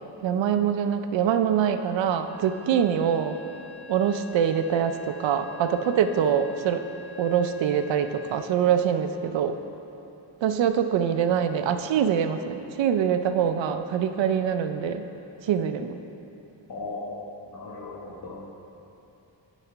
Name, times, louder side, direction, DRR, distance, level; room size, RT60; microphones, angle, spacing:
voice 1, 0.2-3.3 3.9-6.8 7.2-9.6 10.4-15.0 15.4-16.0, right 8 dB, 80° right, 9 dB, 0.6 m, -24 dB
sound 1, 2.3-8.4, left 6 dB, 15° left, 0.7 m, -46 dB
voice 2, 16.7-17.1 17.5-18.5, left 3 dB, 55° left, -7 dB, 1.5 m, -37 dB
10.0 x 4.1 x 5.9 m, 2.9 s
cardioid pair, 95°, 44 cm